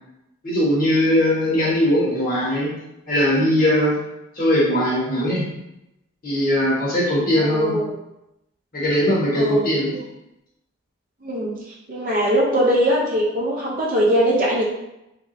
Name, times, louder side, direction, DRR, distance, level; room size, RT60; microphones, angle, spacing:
voice 1, 0.4-2.7 3.1-4.0 4.4-5.4 6.2-7.8 8.7-10.0, equal, 40° left, -5 dB, 1.1 m, -20 dB
voice 2, 7.4-7.9 9.4-10.0 11.2-11.6 11.9-14.6, equal, 40° right, -4 dB, 0.5 m, -21 dB
3.3 x 3.3 x 2.6 m, 0.89 s
head